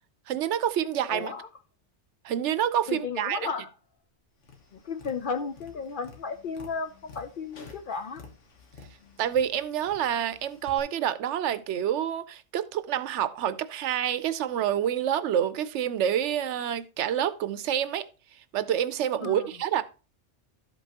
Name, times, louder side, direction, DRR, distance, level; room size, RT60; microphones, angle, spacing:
voice 1, 0.3-1.3 2.2-3.5 9.2-18.1 18.5-19.8, right 10 dB, 75° right, 0.9 m, -27 dB
voice 2, 1.1-1.5 2.9-3.7 4.7-8.2 19.2-19.5, left 5 dB, 55° left, 0.6 m, -34 dB
Tap, 4.4-10.8, left 4 dB, 80° left, 1.5 m, -51 dB
12.5 x 5.3 x 2.8 m
omnidirectional pair, 1.2 m